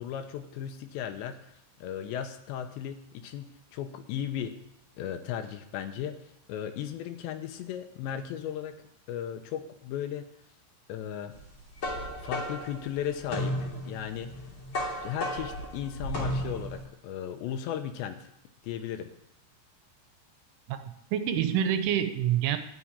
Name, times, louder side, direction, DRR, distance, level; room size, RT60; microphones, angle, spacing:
voice 1, 0.0-4.5 5.0-8.8 9.1-10.3 10.9-11.3 12.2-14.3 15.0-18.3 18.6-19.1, left 9 dB, 80° left, 8 dB, 2.9 m, -36 dB
sound 1, 11.4-16.8, equal, 30° left, 3.3 m, -34 dB
voice 2, 20.7-22.6, right 10 dB, 90° right, 9 dB, 3.3 m, -27 dB
13.5 x 6.2 x 9.7 m, 0.75 s
omnidirectional pair, 5.5 m